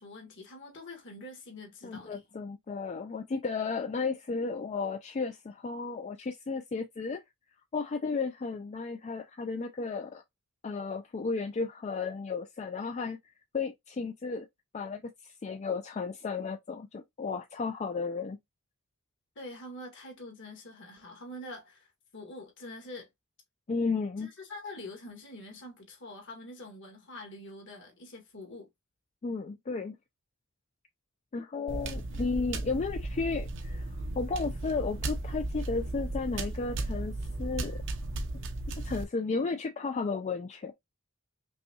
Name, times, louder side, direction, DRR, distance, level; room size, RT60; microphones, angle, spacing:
voice 1, 0.0-2.2 19.3-21.9 22.1-23.1 24.2-28.7, left 1 dB, 60° left, 1.7 m, -45 dB
voice 2, 1.8-7.2 7.7-10.2 10.6-13.2 13.5-14.5 14.7-18.4 23.7-24.3 29.2-30.0 31.3-33.9 34.2-37.1 37.4-37.8 38.7-40.7, left 4 dB, 35° left, 0.4 m, -33 dB
sound 1, 31.7-39.0, right 2 dB, 60° right, 0.7 m, -35 dB
5.4 x 2.3 x 2.8 m
head